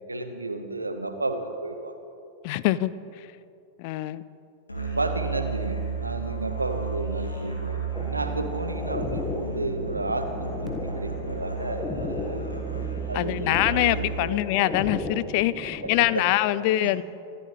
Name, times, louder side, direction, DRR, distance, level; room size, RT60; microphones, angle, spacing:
voice 1, 0.0-1.9 4.8-12.4 13.1-14.4 15.8-16.2 16.8-16.9, right 2 dB, 80° right, 7 dB, 1.3 m, -32 dB
voice 2, 2.4-2.9 3.8-4.2 13.1-17.0, left 15 dB, 45° left, 18 dB, 0.4 m, -24 dB
Musical instrument, 4.7-14.5, right 4 dB, 80° left, 2.3 m, -33 dB
sound 1, 7.9-16.2, left 2 dB, 15° left, 1.5 m, -36 dB
25.5 x 13.5 x 3.2 m, 2.6 s
figure-of-eight pair, 90°, 0 cm